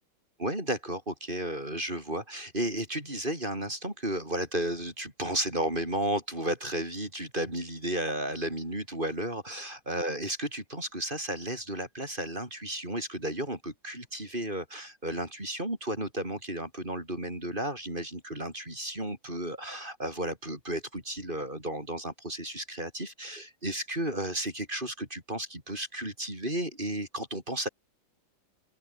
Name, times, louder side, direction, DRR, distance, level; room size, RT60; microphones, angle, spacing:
voice 1, 0.4-27.7, right 1 dB, 25° right, 6.9 m, -33 dB
open air
omnidirectional pair, 2.1 m